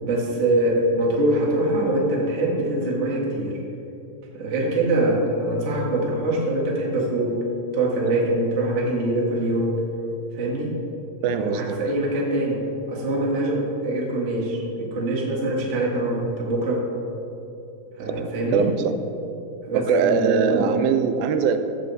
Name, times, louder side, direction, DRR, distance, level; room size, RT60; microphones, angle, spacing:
voice 1, 0.0-3.6 4.3-7.5 7.7-9.8 10.3-10.7 11.2-16.9 18.0-18.7 19.6-20.7, right 1 dB, 50° right, -2 dB, 0.8 m, -24 dB
voice 2, 11.2-11.8 18.5-19.0 19.7-21.6, right 6 dB, 85° right, 9 dB, 2.4 m, -21 dB
15.0 x 7.5 x 4.1 m, 2.8 s
omnidirectional pair, 4.2 m